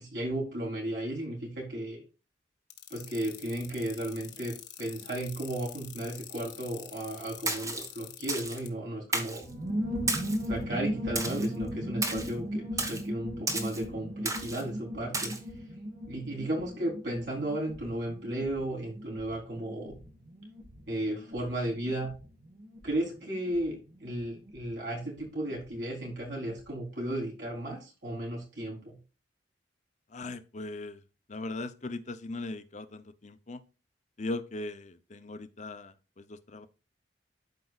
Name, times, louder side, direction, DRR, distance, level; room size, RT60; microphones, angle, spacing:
voice 1, 0.0-2.0 2.9-9.5 10.4-15.3 16.1-19.9 20.9-22.1 22.8-29.0, right 1 dB, 75° right, 4.0 m, -34 dB
sound 1, 2.7-8.7, left 12 dB, 70° left, 1.2 m, -45 dB
Splash splatter, 7.5-7.9 8.3-8.6 9.1-9.4 10.1-10.5 11.2-11.5 12.0-12.3 12.8-13.0 13.5-13.8 14.3-14.6 15.1-15.4, right 2 dB, 20° right, 1.2 m, -32 dB
sound 2, 9.4-25.7 26.0-26.1 26.3-26.7, equal, 50° right, 1.7 m, -38 dB
voice 2, 30.1-31.0 31.3-33.6 34.2-36.7, left 2 dB, 40° left, 0.7 m, -39 dB
12.0 x 4.8 x 2.4 m
head